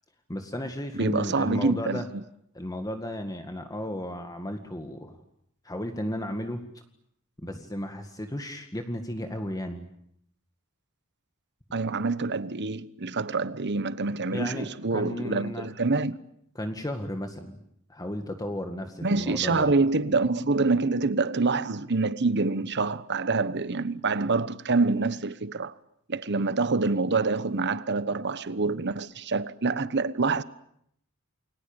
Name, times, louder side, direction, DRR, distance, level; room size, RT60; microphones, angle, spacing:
voice 1, 0.3-2.1 2.6-5.2 5.6-6.8 7.4-9.9 14.3-15.7 16.6-17.6 17.9-19.7, left 1 dB, 15° left, 2.0 m, -34 dB
voice 2, 1.0-2.0 11.7-16.2 19.0-25.7 26.1-30.4, right 3 dB, 55° right, 1.2 m, -26 dB
29.0 x 23.0 x 9.0 m
head